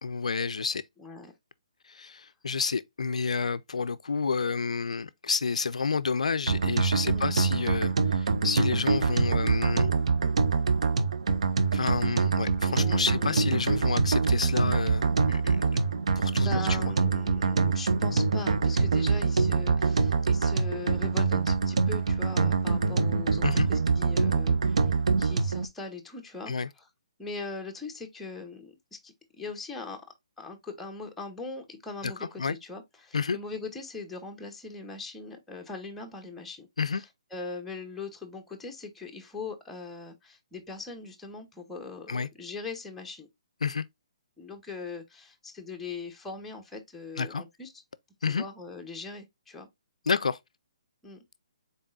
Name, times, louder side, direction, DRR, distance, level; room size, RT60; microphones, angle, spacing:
voice 1, 0.0-0.8 1.9-9.9 11.7-16.9 23.4-23.7 26.5-26.7 32.0-32.1 32.4-32.6 33.1-33.4 36.8-37.0 42.1-42.3 43.6-43.8 47.2-47.4 48.2-48.4 50.1-50.4, left 5 dB, 85° left, 0.3 m, -30 dB
voice 2, 1.0-1.3 7.0-7.3 12.7-13.5 16.3-26.5 27.2-30.0 30.4-43.3 44.4-47.7 48.3-49.7 51.0-51.2, left 4 dB, 5° left, 0.8 m, -41 dB
sound 1, 6.5-25.7, right 4 dB, 70° right, 0.6 m, -25 dB
4.0 x 3.6 x 2.4 m
hypercardioid pair, 145°, 4 cm